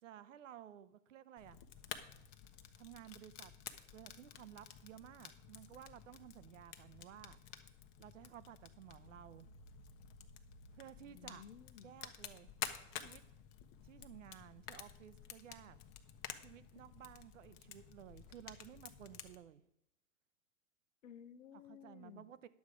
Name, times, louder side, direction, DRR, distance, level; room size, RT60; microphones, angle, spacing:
voice 1, 0.0-1.6 2.8-3.5 3.9-7.4 8.0-9.5 10.7-11.4 11.8-12.5 12.9-13.2 13.8-15.8 16.4-19.6 21.7-22.5, right 11 dB, 75° right, 15 dB, 0.8 m, -55 dB
Fire, 1.4-19.3, left 10 dB, 45° left, 1.0 m, -52 dB
voice 2, 11.0-11.9 21.0-22.3, left 9 dB, 85° left, 13 dB, 0.8 m, -55 dB
10.5 x 7.2 x 4.9 m, 0.87 s
hypercardioid pair, 120°, 38 cm